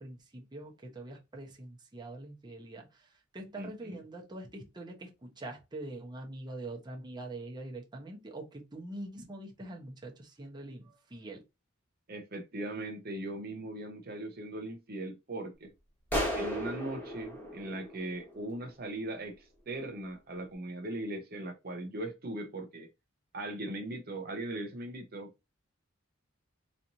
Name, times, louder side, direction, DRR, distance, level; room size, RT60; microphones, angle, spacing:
voice 1, 0.0-11.4, right 2 dB, 20° right, 0.9 m, -44 dB
voice 2, 3.6-4.0 12.1-15.7 16.3-22.9 23.3-25.5, right 1 dB, 45° right, 0.7 m, -39 dB
sound 1, 16.1-18.7, equal, 10° left, 1.3 m, -35 dB
4.1 x 2.9 x 2.6 m
head